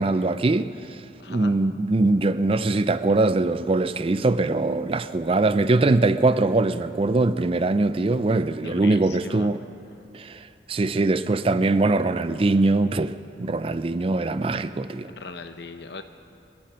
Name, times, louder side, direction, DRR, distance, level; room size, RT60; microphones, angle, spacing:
voice 1, 0.0-1.0 1.3-9.6 10.1-13.1 13.4-15.1, right 2 dB, 30° right, 0.4 m, -22 dB
voice 2, 1.2-1.6 8.6-9.5 15.1-16.0, left 4 dB, 65° left, 0.8 m, -39 dB
30.0 x 10.5 x 4.4 m
head